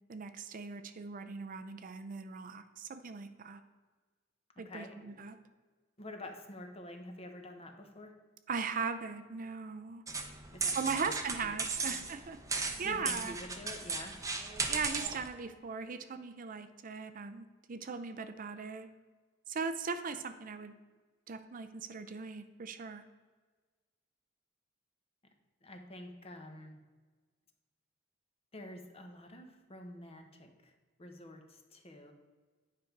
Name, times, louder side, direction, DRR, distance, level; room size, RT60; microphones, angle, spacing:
voice 1, 0.1-3.6 4.6-5.4 8.5-10.0 10.7-13.4 14.7-18.9 19.5-20.7 21.3-23.0, right 5 dB, 45° right, 9 dB, 0.5 m, -39 dB
voice 2, 4.6-5.1 6.0-8.1 10.5-12.0 12.8-14.2 25.6-26.8 28.5-30.7 31.0-32.1, left 1 dB, 30° left, 5 dB, 1.0 m, -48 dB
sound 1, 10.1-15.3, right 4 dB, 15° right, 0.7 m, -36 dB
9.5 x 5.2 x 4.6 m, 1.4 s
head